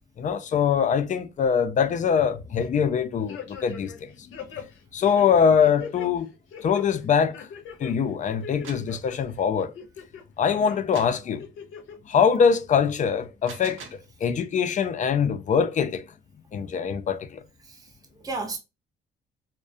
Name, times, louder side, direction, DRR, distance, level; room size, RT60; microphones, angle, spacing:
voice 1, 0.2-4.1 4.9-6.3 6.6-7.5 7.8-9.7 10.4-11.5 12.1-16.1 16.5-17.4, left 7 dB, 40° left, 0.4 m, -23 dB
sound 1, 3.3-4.0 4.3-6.1 6.5-6.8 7.3-7.9 8.3-9.1 9.6-10.2 10.6-10.8 11.4-12.0 12.3-12.4, left 7 dB, 85° left, 0.6 m, -40 dB
sound 2, 8.4-9.0 10.9-11.2 13.2-14.1, right 6 dB, 85° right, 0.6 m, -43 dB
voice 2, 17.6-18.6, right 3 dB, 20° right, 0.6 m, -34 dB
2.3 x 2.1 x 2.6 m
cardioid pair, 90°, 20 cm